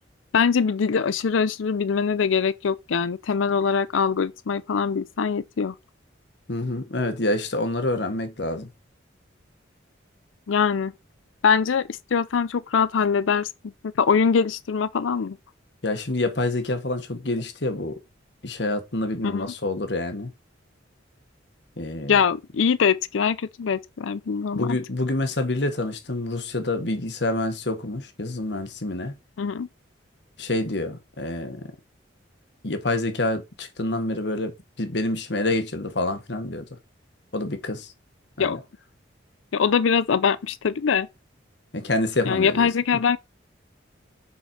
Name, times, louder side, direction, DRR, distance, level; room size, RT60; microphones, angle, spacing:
voice 1, 0.3-5.7 10.5-10.9 11.4-13.5 13.8-15.4 19.2-19.5 22.1-24.8 29.4-29.7 38.4-38.6 39.5-41.1 42.2-43.2, left 6 dB, 90° left, 0.5 m, -23 dB
voice 2, 6.5-8.7 15.8-18.0 18.4-20.3 21.8-22.2 24.5-29.1 30.4-31.6 32.6-34.5 34.8-36.6 37.3-37.9 38.4-38.6 41.7-42.7, left 2 dB, 60° left, 1.5 m, -27 dB
7.4 x 5.3 x 4.3 m
head